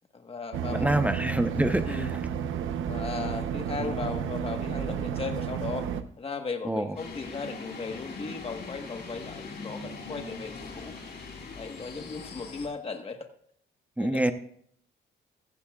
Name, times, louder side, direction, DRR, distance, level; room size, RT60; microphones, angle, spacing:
voice 1, 0.1-0.9 1.8-2.1 2.8-5.9 6.2-10.9 11.5-13.3 14.0-14.2, left 4 dB, 30° left, 5 dB, 1.4 m, -36 dB
sound 1, 0.5-6.0, right 8 dB, 80° right, 0.9 m, -31 dB
voice 2, 0.7-2.2 3.8-3.9 6.6-7.0 14.0-14.3, right 1 dB, 5° right, 8 dB, 0.9 m, -26 dB
sound 2, 7.0-12.7, left 4 dB, 55° left, 3.4 m, -41 dB
15.5 x 15.0 x 2.4 m, 0.65 s
cardioid pair, 90°, 20 cm